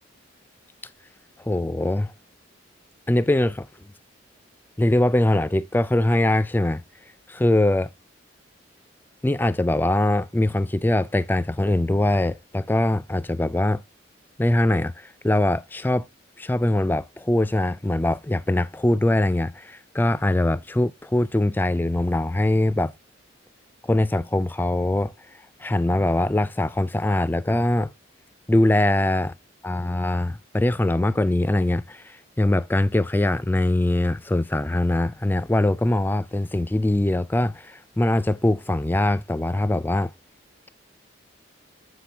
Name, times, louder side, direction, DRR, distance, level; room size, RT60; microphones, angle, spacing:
voice 1, 1.4-2.1 3.1-3.7 4.8-6.8 7.3-7.9 9.2-13.8 14.4-16.1 16.4-22.9 23.8-25.1 25.6-27.9 28.5-29.3 29.6-40.1, left 1 dB, 10° left, 0.3 m, -22 dB
7.9 x 5.9 x 3.3 m
head